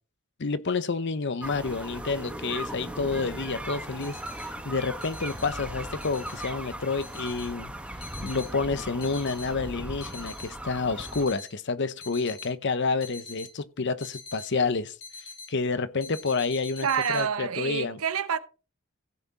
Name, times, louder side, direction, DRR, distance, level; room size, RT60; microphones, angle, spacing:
voice 1, 0.4-7.7 8.2-15.0 15.5-16.9 17.1-18.0, left 4 dB, 55° left, 0.8 m, -29 dB
sound 1, 1.4-11.2, right 1 dB, 5° right, 1.2 m, -38 dB
sound 2, 4.0-4.5 5.0-5.5 6.0-6.5 7.0-7.5 8.0-8.5 9.0-9.5 10.0-10.5 11.0-11.5 12.0-12.5 13.0-13.5 14.0-14.5 15.0-15.5 16.0-17.2, left 4 dB, 75° left, 3.8 m, -43 dB
voice 2, 16.8-18.4, right 7 dB, 90° right, 0.9 m, -27 dB
15.5 x 6.0 x 4.1 m
head